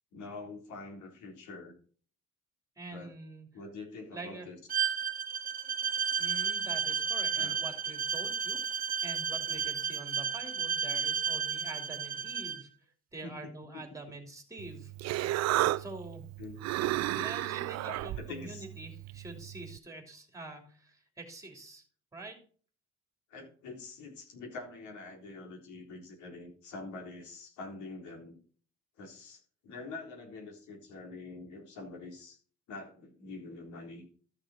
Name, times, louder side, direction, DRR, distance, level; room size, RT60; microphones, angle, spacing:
voice 1, 0.1-1.7 2.9-3.1 3.5-4.9 7.4-7.6 13.2-13.8 16.4-16.7 17.8-18.7 23.3-28.4 29.0-32.4 32.7-34.1, left 3 dB, 85° left, 2 dB, 3.7 m, -45 dB
voice 2, 2.8-3.5 4.1-4.5 6.2-12.7 13.1-14.9 15.8-16.2 17.1-21.8 22.1-22.4, right 2 dB, 10° right, 4 dB, 2.9 m, -45 dB
Bowed string instrument, 4.7-12.6, right 7 dB, 30° right, 1.3 m, -32 dB
Human voice, 14.6-19.8, right 15 dB, 65° right, 0.5 m, -33 dB
13.5 x 6.6 x 4.3 m, 0.42 s
cardioid pair, 140°, 29 cm